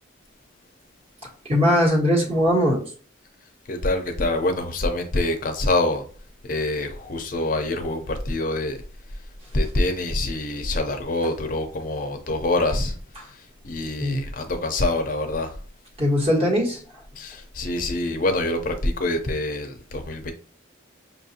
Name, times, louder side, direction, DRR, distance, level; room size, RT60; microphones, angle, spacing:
voice 1, 1.5-2.8 13.2-13.3 14.0-14.2 16.0-16.8, equal, 30° right, 1.3 m, -20 dB
voice 2, 3.7-6.0 6.4-8.8 9.5-13.0 13.6-15.5 17.2-20.3, left 2 dB, 45° left, 0.5 m, -25 dB
5.8 x 2.5 x 2.8 m
head